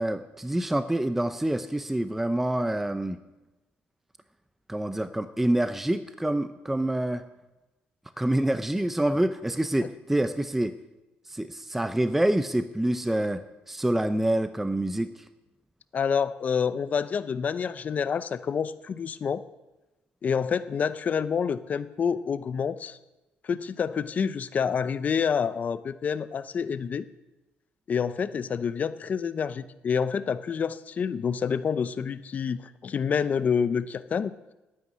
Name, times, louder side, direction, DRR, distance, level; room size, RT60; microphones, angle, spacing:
voice 1, 0.0-3.2 4.7-7.2 8.2-10.7 11.3-15.1, right 1 dB, 5° right, 10 dB, 0.6 m, -27 dB
voice 2, 15.9-19.4 20.2-23.0 23.4-27.0 27.9-34.3, left 6 dB, 40° left, 14 dB, 0.6 m, -28 dB
9.5 x 9.2 x 9.8 m, 1.0 s
cardioid pair, 125°, 4 cm